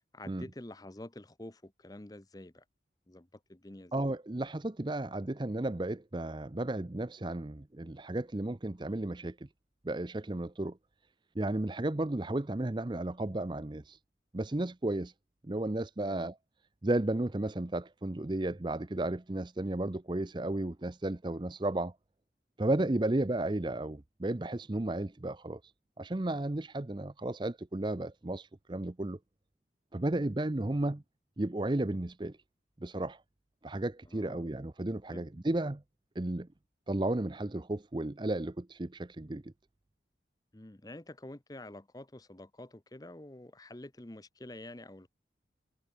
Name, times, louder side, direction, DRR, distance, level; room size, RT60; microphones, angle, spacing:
voice 1, 0.1-2.6 3.1-3.9 16.0-16.3 34.1-34.5 35.1-35.2 40.5-45.1, left 1 dB, 20° left, 0.8 m, -48 dB
voice 2, 3.9-9.4 9.8-10.8 11.4-14.0 14.3-15.1 15.5-16.4 16.8-21.9 22.6-25.6 26.0-29.2 29.9-31.0 31.4-32.4 32.8-33.2 33.6-35.8 36.2-36.5 36.9-39.5, right 1 dB, 25° right, 0.6 m, -33 dB
head